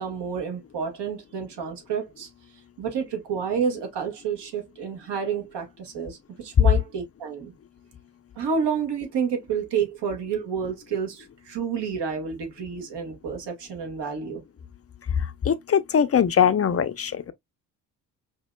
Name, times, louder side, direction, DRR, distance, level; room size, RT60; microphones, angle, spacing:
voice 1, 0.0-2.3 2.8-7.5 8.4-14.4, right 6 dB, 55° right, 2.0 m, -29 dB
voice 2, 15.4-17.3, left 8 dB, 30° left, 0.8 m, -21 dB
5.3 x 2.8 x 2.3 m
hypercardioid pair, 45°, 49 cm